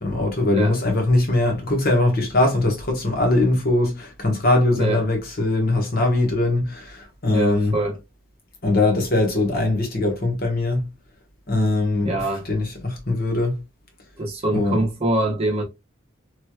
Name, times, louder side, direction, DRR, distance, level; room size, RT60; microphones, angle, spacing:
voice 1, 0.0-7.8 8.6-10.9 11.5-13.6 14.5-14.8, left 2 dB, 45° left, 1.1 m, -21 dB
voice 2, 4.8-5.1 7.3-8.0 12.0-12.5 14.2-15.6, right 2 dB, 30° right, 0.8 m, -24 dB
3.2 x 3.0 x 2.3 m
head